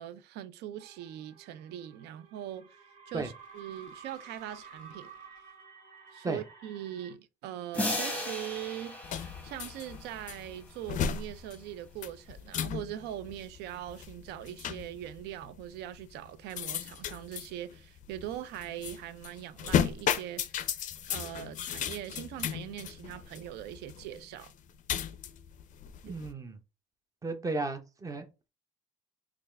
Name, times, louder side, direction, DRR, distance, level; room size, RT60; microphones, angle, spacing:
voice 1, 0.0-5.4 6.1-20.5 21.1-24.5 26.1-26.2, right 11 dB, 80° right, 0.4 m, -41 dB
sound 1, 0.8-7.1, right 5 dB, 50° right, 1.5 m, -52 dB
sound 2, 7.7-10.2, left 1 dB, 10° left, 0.9 m, -35 dB
sound 3, 9.0-26.3, left 9 dB, 50° left, 0.4 m, -36 dB
voice 2, 26.0-26.6 27.2-28.3, right 3 dB, 20° right, 0.6 m, -34 dB
3.4 x 2.4 x 3.2 m
cardioid pair, 110°, 17 cm